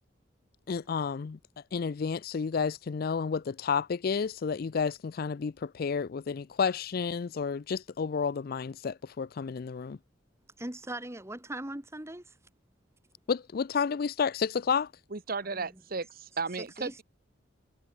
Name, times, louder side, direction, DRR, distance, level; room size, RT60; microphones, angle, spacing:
voice 1, 0.7-1.4 1.7-10.0 13.3-14.9, left 6 dB, 50° left, 0.4 m, -31 dB
voice 2, 10.6-12.4 15.5-15.7 16.6-17.0, right 1 dB, 15° right, 1.8 m, -40 dB
voice 3, 15.1-16.9, right 4 dB, 50° right, 1.2 m, -34 dB
head